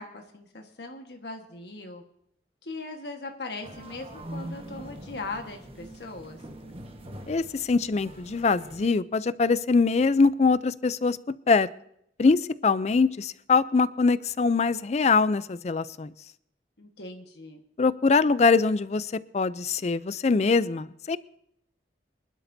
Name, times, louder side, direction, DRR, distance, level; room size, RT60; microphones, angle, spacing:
voice 1, 0.0-2.0 2.6-6.4 16.8-17.6, left 3 dB, 70° left, 4 dB, 1.4 m, -39 dB
sound 1, 3.6-8.9, right 1 dB, 30° right, 1.4 m, -43 dB
voice 2, 7.3-11.2 11.5-11.7 12.2-16.1 17.8-21.2, left 4 dB, 40° left, 17 dB, 0.4 m, -23 dB
25.5 x 12.0 x 2.7 m, 0.74 s
head